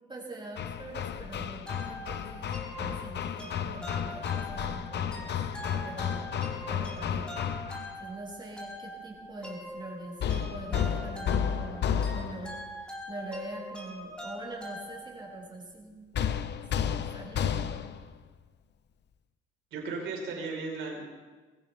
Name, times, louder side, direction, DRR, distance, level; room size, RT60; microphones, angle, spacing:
voice 1, 0.1-2.5 2.8-7.4 8.0-16.2 16.8-17.8, right 2 dB, 25° right, -3 dB, 6.9 m, -43 dB
Hammer, 0.6-8.0 10.2-12.6 16.1-18.1, left 8 dB, 60° left, 0.9 m, -32 dB
sound 1, 1.7-15.5, equal, 5° left, 4.6 m, -43 dB
voice 2, 19.7-21.0, right 3 dB, 80° right, 0 dB, 4.6 m, -35 dB
22.5 x 16.5 x 3.5 m, 1.3 s
cardioid pair, 90°, 20 cm